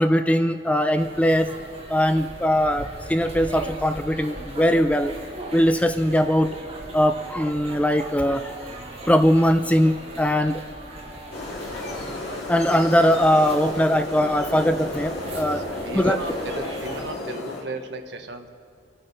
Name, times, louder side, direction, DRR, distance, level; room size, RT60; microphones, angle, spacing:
voice 1, 0.0-1.5 1.9-5.1 5.5-6.5 6.9-8.5 9.1-10.6 12.5-15.6 15.9-16.2, equal, 5° left, 9 dB, 0.4 m, -20 dB
sound 1, 0.9-17.1, right 2 dB, 30° right, 2.2 m, -39 dB
Wind instrument woodwind instrument, 10.6-15.3, left 1 dB, 85° left, 2.9 m, -49 dB
sound 2, 11.3-17.6, left 2 dB, 55° left, 2.7 m, -33 dB
voice 2, 15.5-18.5, right 2 dB, 60° right, 5 dB, 1.3 m, -35 dB
26.5 x 9.0 x 5.5 m, 2.4 s
head